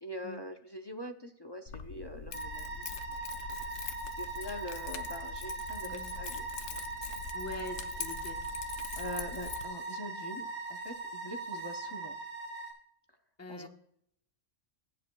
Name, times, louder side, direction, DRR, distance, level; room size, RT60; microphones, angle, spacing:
voice 1, 0.0-3.2 4.2-6.8 9.0-12.1 13.5-13.7, left 1 dB, 30° left, 5 dB, 0.5 m, -44 dB
Keys jangling, 1.7-9.6, left 7 dB, 85° left, 1.1 m, -43 dB
sound 1, 2.3-12.7, right 3 dB, 55° left, 4.5 m, -40 dB
voice 2, 5.8-6.1 7.3-8.4 13.4-13.7, left 2 dB, 15° left, 4 dB, 1.0 m, -43 dB
22.5 x 7.7 x 2.3 m, 0.73 s
omnidirectional pair, 1.3 m